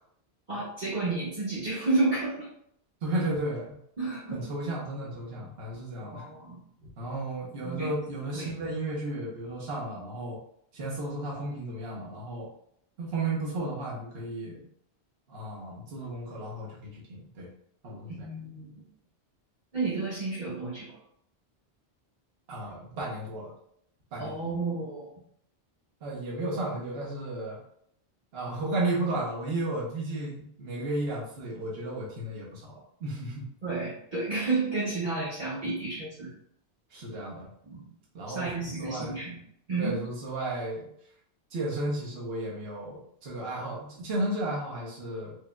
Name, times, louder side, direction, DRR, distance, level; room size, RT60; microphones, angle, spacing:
voice 1, 0.5-2.5 4.0-4.4 6.0-6.6 7.6-7.9 8.3-8.5 18.1-18.8 19.7-21.0 24.2-25.1 33.6-36.3 37.6-37.8 38.3-39.4 39.7-40.0, right 3 dB, 45° right, -12 dB, 1.4 m, -31 dB
voice 2, 3.0-3.8 4.3-6.2 6.8-10.4 10.7-12.5 13.0-14.6 15.3-17.5 17.8-18.3 22.5-23.5 24.1-24.3 26.0-27.6 28.3-33.5 36.9-37.5 38.1-39.2 39.8-40.9 41.5-45.4, right 2 dB, 70° right, -4 dB, 1.1 m, -33 dB
4.9 x 2.7 x 2.2 m, 0.69 s
omnidirectional pair, 1.1 m